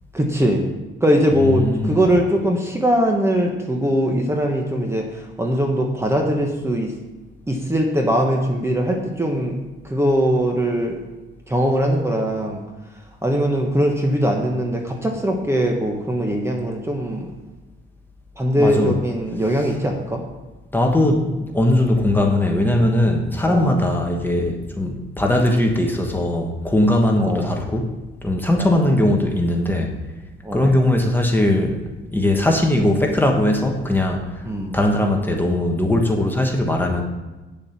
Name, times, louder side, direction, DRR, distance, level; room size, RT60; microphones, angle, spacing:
voice 1, 0.1-0.7 1.0-6.9 7.5-9.5 9.8-11.0 11.5-12.6 13.2-17.3 18.4-20.2 23.4-23.7 27.2-27.5 28.6-28.9 30.4-30.8 34.4-34.8, equal, 10° right, 1 dB, 1.2 m, -21 dB
voice 2, 1.6-2.0 18.6-19.0 20.7-27.9 28.2-29.9 30.5-31.8 32.1-34.4 34.7-37.0, left 1 dB, 10° left, 1 dB, 1.3 m, -19 dB
8.9 x 7.1 x 5.9 m, 1.1 s
cardioid pair, 130°, 21 cm